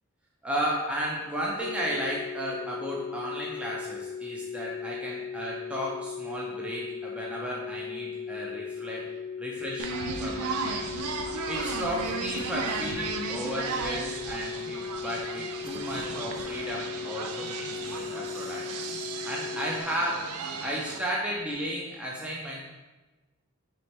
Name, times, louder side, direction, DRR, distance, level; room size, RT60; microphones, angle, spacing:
voice 1, 0.4-9.0 9.4-9.9 10.2-10.9 11.5-18.6 19.2-22.6, equal, 5° right, -4 dB, 0.4 m, -34 dB
sound 1, 1.6-19.8, left 6 dB, 55° left, 0.4 m, -37 dB
sound 2, 9.8-21.0, right 4 dB, 85° right, 0.4 m, -35 dB
3.2 x 3.1 x 4.3 m, 1.2 s
head